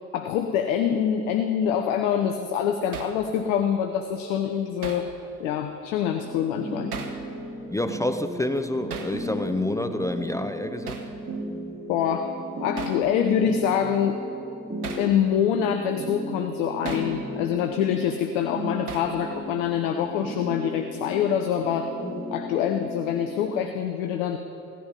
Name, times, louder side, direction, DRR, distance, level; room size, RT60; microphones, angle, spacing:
voice 1, 0.1-5.1 5.4-6.9 11.9-12.3 12.6-14.2 15.0-21.9 22.3-24.4, left 8 dB, 65° left, 6 dB, 0.9 m, -25 dB
Hammer, 2.9-3.2 4.8-5.1 6.9-7.2 8.9-9.2 10.9-11.1 12.8-13.0 14.8-15.1 16.8-17.1 18.9-19.2, right 6 dB, 85° right, 1.1 m, -36 dB
sound 1, 6.1-23.5, equal, 20° right, 4.0 m, -36 dB
voice 2, 7.7-11.0, left 1 dB, 5° left, 8 dB, 0.5 m, -28 dB
16.5 x 10.5 x 5.4 m, 3.0 s
hypercardioid pair, 65°, 44 cm